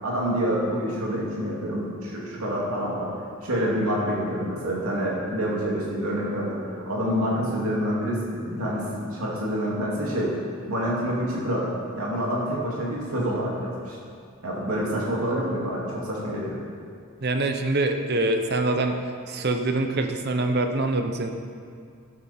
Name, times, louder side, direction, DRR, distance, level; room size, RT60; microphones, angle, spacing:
voice 1, 0.0-3.1 3.4-10.3 10.7-14.0 14.4-16.6, equal, 80° right, -5 dB, 2.5 m, -27 dB
voice 2, 17.2-19.0 19.3-21.3, right 2 dB, 45° right, 6 dB, 0.8 m, -24 dB
12.0 x 10.0 x 4.4 m, 2.3 s
head